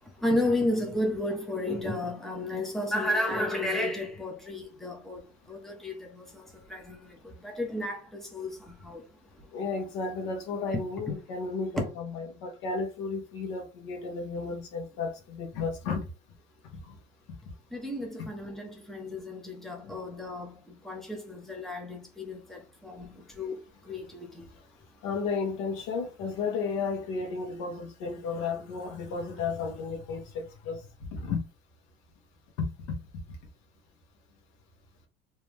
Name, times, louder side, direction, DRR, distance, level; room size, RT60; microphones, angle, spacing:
voice 1, 0.2-5.2 5.5-6.2 6.7-7.0 7.4-8.5 8.8-9.0 10.7-10.8 11.8-11.9 17.7-20.5 20.8-23.1 23.4-23.6 23.9-24.5, left 1 dB, ahead, 1.1 m, -32 dB
voice 2, 9.5-16.0 16.9-17.0 19.8-19.9 22.5-22.6 25.0-30.9 31.1-31.4 32.6-33.0, left 4 dB, 90° left, 1.3 m, -33 dB
3.2 x 3.0 x 3.5 m
cardioid pair, 125°, 17 cm